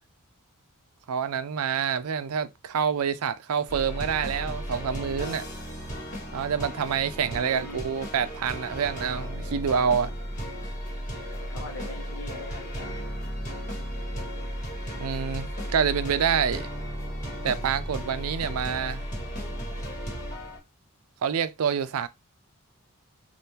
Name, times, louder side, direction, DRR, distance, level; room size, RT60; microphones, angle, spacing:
voice 1, 1.1-5.5 6.3-10.1 15.0-16.7 17.4-19.0 21.2-22.1, right 7 dB, 70° right, 0.4 m, -27 dB
sound 1, 3.7-20.6, equal, 35° left, 1.6 m, -35 dB
voice 2, 7.2-7.8 11.4-12.9, left 2 dB, 65° left, 0.9 m, -42 dB
3.6 x 2.5 x 2.8 m
head